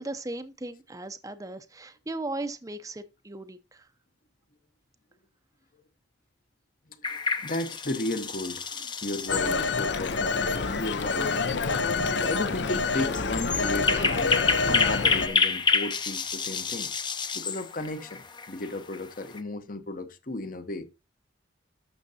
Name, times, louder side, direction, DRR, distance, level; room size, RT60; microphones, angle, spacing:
voice 1, 0.0-3.9, right 2 dB, 15° right, 0.6 m, -37 dB
sound 1, 7.0-19.4, left 5 dB, 25° left, 0.7 m, -30 dB
voice 2, 7.1-11.3 12.2-14.4 14.7-16.9 17.3-20.8, left 2 dB, 45° left, 1.0 m, -34 dB
Telephone, 9.3-15.3, left 4 dB, 65° left, 0.7 m, -27 dB
12.0 x 6.5 x 2.8 m
head